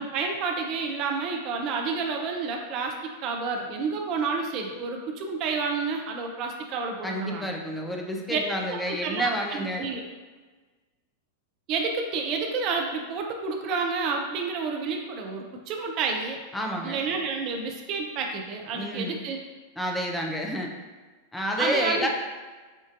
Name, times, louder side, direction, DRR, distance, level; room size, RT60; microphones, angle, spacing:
voice 1, 0.0-2.9 3.2-7.5 8.3-8.4 8.7-10.0 11.7-16.4 16.8-19.4 21.6-22.1, right 4 dB, 40° right, 2 dB, 0.5 m, -30 dB
voice 2, 7.0-9.9 16.5-17.0 18.7-19.2 19.8-20.7 21.3-22.1, equal, 5° left, 0 dB, 0.5 m, -29 dB
6.5 x 2.6 x 2.5 m, 1.4 s
figure-of-eight pair, 90°, 0 cm